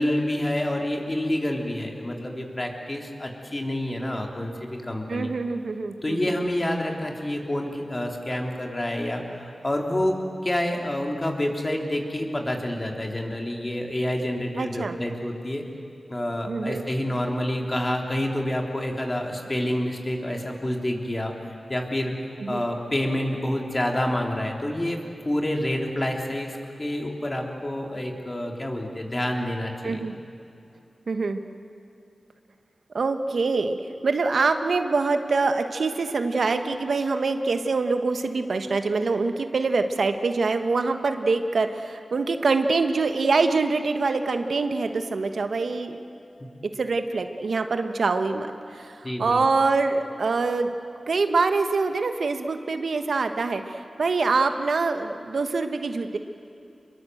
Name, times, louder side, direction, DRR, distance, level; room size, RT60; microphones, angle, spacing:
voice 1, 0.0-5.3 6.0-10.1 10.4-15.6 16.1-22.1 22.5-25.0 25.3-30.0 49.0-49.4, left 1 dB, 30° left, 1 dB, 3.6 m, -28 dB
voice 2, 5.1-6.3 14.6-15.0 16.5-16.8 22.4-22.6 29.8-30.1 31.1-31.4 32.9-33.8 34.0-46.0 46.8-50.7 51.1-56.2, right 4 dB, 80° right, 7 dB, 1.3 m, -25 dB
26.0 x 22.0 x 7.9 m, 2.6 s
cardioid pair, 55°, 0 cm